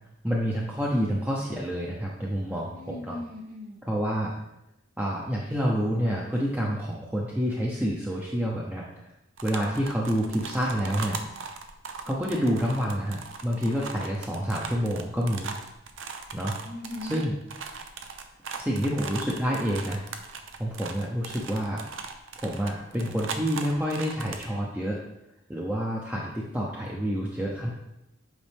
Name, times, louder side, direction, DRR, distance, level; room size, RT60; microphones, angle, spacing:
voice 1, 0.2-3.2 3.9-4.3 5.0-9.0 9.4-11.2 12.0-15.5 16.3-16.6 17.1-17.3 18.5-20.0 20.6-21.9 22.4-25.0 25.5-27.7, equal, 10° right, -3 dB, 0.7 m, -28 dB
voice 2, 2.7-3.8 16.6-17.2, left 2 dB, 40° right, -3 dB, 2.3 m, -39 dB
sound 1, 9.4-24.4, right 5 dB, 75° right, 0.7 m, -39 dB
8.1 x 5.4 x 3.5 m, 0.88 s
head